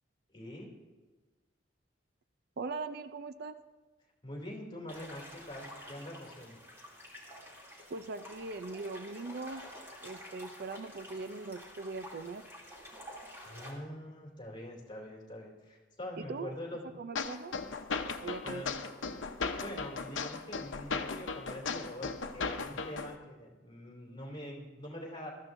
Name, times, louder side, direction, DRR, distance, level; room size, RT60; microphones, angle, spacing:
voice 1, 0.3-0.7 4.2-6.6 13.4-16.8 18.4-18.8 19.6-25.3, left 1 dB, 25° left, -2 dB, 2.7 m, -44 dB
voice 2, 2.6-3.6 7.9-9.6 10.0-12.5 16.2-16.5 17.0-17.5 18.2-18.6, right 3 dB, 55° right, 10 dB, 0.5 m, -40 dB
sound 1, 4.9-13.7, equal, 15° right, 2.8 m, -50 dB
sound 2, 17.2-23.1, left 4 dB, 80° left, 0.9 m, -37 dB
21.0 x 13.5 x 2.6 m, 1.3 s
head